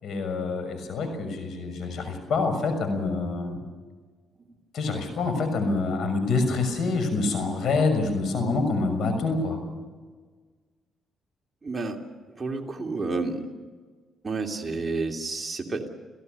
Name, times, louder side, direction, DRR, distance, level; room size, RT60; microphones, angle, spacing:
voice 1, 0.0-3.6 4.7-9.6, left 3 dB, 65° left, 7 dB, 6.4 m, -26 dB
voice 2, 11.6-12.0 12.4-13.5 14.2-15.9, right 3 dB, 25° right, 1 dB, 2.9 m, -30 dB
29.0 x 17.0 x 6.8 m, 1.5 s
cardioid pair, 90°, 0 cm